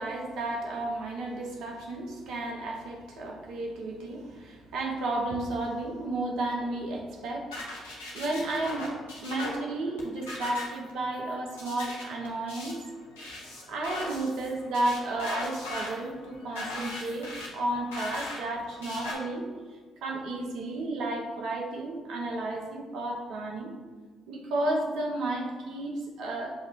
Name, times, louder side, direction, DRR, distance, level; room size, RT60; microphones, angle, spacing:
voice 1, 0.0-7.6 8.1-8.9 9.2-12.8 13.7-19.5 20.0-23.7 24.3-26.5, right 2 dB, 70° right, 0 dB, 0.8 m, -32 dB
sound 1, 7.5-19.1, left 2 dB, 85° left, 0.8 m, -39 dB
6.4 x 2.6 x 3.1 m, 1.4 s
hypercardioid pair, 50°, 0 cm